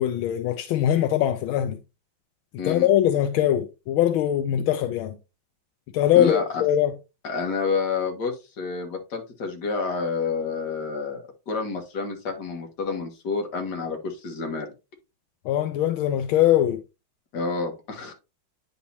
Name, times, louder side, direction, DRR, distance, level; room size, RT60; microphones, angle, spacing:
voice 1, 0.0-1.8 2.6-5.2 5.9-6.9 15.4-16.8, left 11 dB, 80° left, 1.4 m, -22 dB
voice 2, 2.6-2.9 4.6-4.7 6.2-6.6 7.2-14.7 17.3-18.1, left 4 dB, 55° left, 1.9 m, -29 dB
9.4 x 4.1 x 2.8 m
omnidirectional pair, 2.2 m